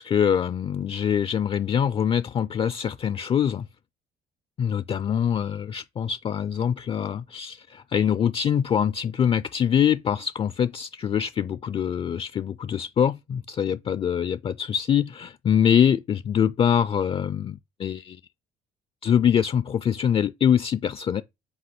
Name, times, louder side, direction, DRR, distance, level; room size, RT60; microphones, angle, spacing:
voice 1, 0.0-3.7 4.6-18.2 19.0-21.2, left 8 dB, 35° left, 0.4 m, -24 dB
7.8 x 3.0 x 5.8 m
cardioid pair, 110°, 17 cm